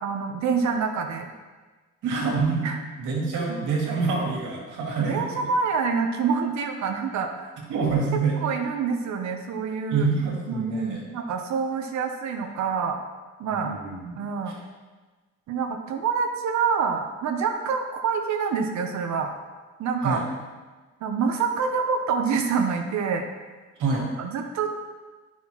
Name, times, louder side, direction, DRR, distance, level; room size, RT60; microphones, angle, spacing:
voice 1, 0.0-1.3 2.6-2.8 3.5-3.7 5.0-7.6 8.1-10.1 10.5-13.0 13.4-13.7 14.2-14.6 15.5-19.3 19.8-20.2 21.0-23.3 24.2-24.7, right 5 dB, 70° right, 4 dB, 0.8 m, -26 dB
voice 2, 2.0-2.7 3.0-5.5 7.7-8.4 9.9-11.0 13.5-14.1 14.5-14.6 20.0-20.3 23.8-24.1, right 4 dB, 90° right, -2 dB, 2.1 m, -26 dB
10.5 x 5.7 x 3.0 m, 1.3 s
cardioid pair, 90°, 30 cm